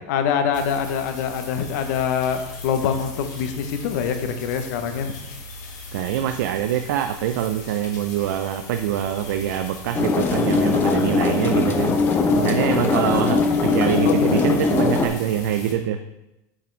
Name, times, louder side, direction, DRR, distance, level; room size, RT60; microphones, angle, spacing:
voice 1, 0.1-5.1 14.0-14.8, left 7 dB, 65° left, 8 dB, 0.8 m, -25 dB
sound 1, 0.5-15.7, left 3 dB, 90° left, 1.5 m, -39 dB
voice 2, 5.9-12.0 12.4-16.0, right 10 dB, 75° right, 7 dB, 0.4 m, -24 dB
sound 2, 9.9-15.1, left 4 dB, 20° left, 0.5 m, -20 dB
7.4 x 5.1 x 3.3 m, 0.94 s
supercardioid pair, 155°, 10 cm